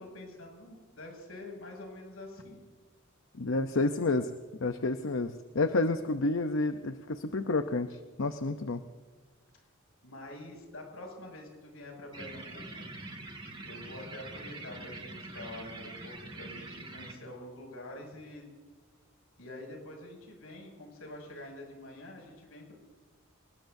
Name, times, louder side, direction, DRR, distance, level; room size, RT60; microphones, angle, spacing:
voice 1, 0.0-2.6 10.0-13.1 13.6-18.5 19.4-22.7, left 1 dB, 85° left, 1 dB, 6.7 m, -46 dB
voice 2, 3.3-4.3 4.6-8.8, left 2 dB, 65° left, 8 dB, 0.7 m, -30 dB
sound 1, 12.1-17.1, right 2 dB, 25° right, 2.3 m, -44 dB
27.5 x 19.5 x 2.7 m, 1.4 s
head